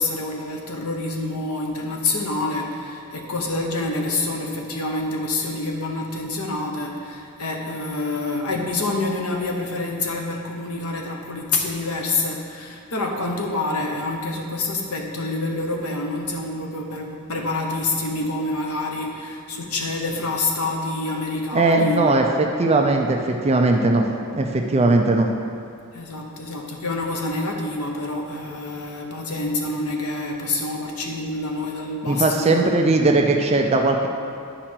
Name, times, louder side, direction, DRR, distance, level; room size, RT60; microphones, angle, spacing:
voice 1, 0.0-22.3 25.9-32.7, left 2 dB, 70° left, 1 dB, 1.0 m, -27 dB
voice 2, 21.5-24.1 24.3-25.3 32.0-34.1, right 2 dB, 30° right, 2 dB, 0.5 m, -19 dB
10.0 x 4.9 x 4.5 m, 2.4 s
head